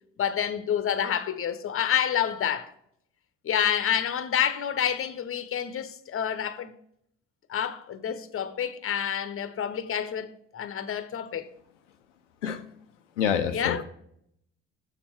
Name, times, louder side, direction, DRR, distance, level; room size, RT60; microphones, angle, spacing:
voice 1, 0.2-2.7 3.4-6.7 7.5-11.5 13.5-13.8, left 9 dB, 40° left, 0.9 m, -28 dB
voice 2, 13.2-13.8, left 8 dB, 90° left, 0.5 m, -27 dB
7.1 x 6.7 x 4.5 m
hypercardioid pair, 50°, 35 cm